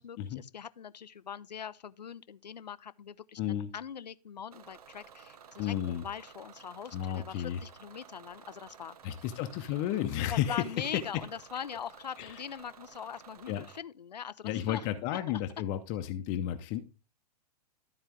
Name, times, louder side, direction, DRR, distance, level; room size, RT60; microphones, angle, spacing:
voice 1, 0.0-9.0 10.3-15.4, left 8 dB, 85° left, 0.5 m, -42 dB
voice 2, 3.4-3.7 5.6-6.0 6.9-7.6 9.0-10.6 12.2-12.3 13.5-13.6 14.4-16.8, left 11 dB, 40° left, 0.8 m, -32 dB
Bus / Engine, 4.5-13.8, right 7 dB, 65° right, 0.8 m, -54 dB
12.5 x 4.4 x 3.6 m
figure-of-eight pair, 105°, 21 cm